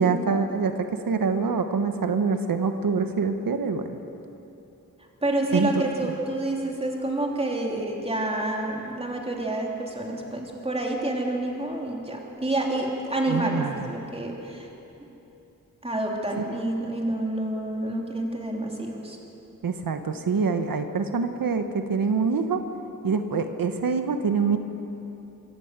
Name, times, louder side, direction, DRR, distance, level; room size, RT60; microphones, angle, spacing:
voice 1, 0.0-3.9 5.5-5.7 6.0-6.1 13.3-13.9 16.4-16.5 19.6-22.6 23.0-24.6, right 5 dB, 80° right, 7 dB, 1.2 m, -25 dB
voice 2, 5.2-14.7 15.8-19.2, right 1 dB, 15° right, 0 dB, 3.2 m, -28 dB
24.0 x 15.0 x 8.2 m, 3.0 s
wide cardioid pair, 115°, 34 cm